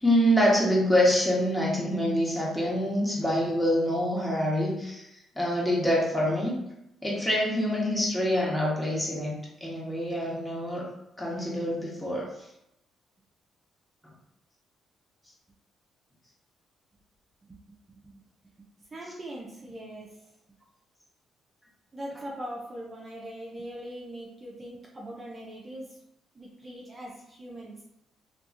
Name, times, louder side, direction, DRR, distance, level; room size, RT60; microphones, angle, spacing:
voice 1, 0.0-5.1 5.4-6.6 7.0-9.3 9.6-10.9 11.2-12.3, equal, 5° left, -5 dB, 1.1 m, -25 dB
voice 2, 18.9-20.3 21.9-26.0 26.3-27.8, right 1 dB, 30° right, -3 dB, 0.6 m, -41 dB
2.7 x 2.5 x 2.4 m, 0.82 s
cardioid pair, 90°, 0 cm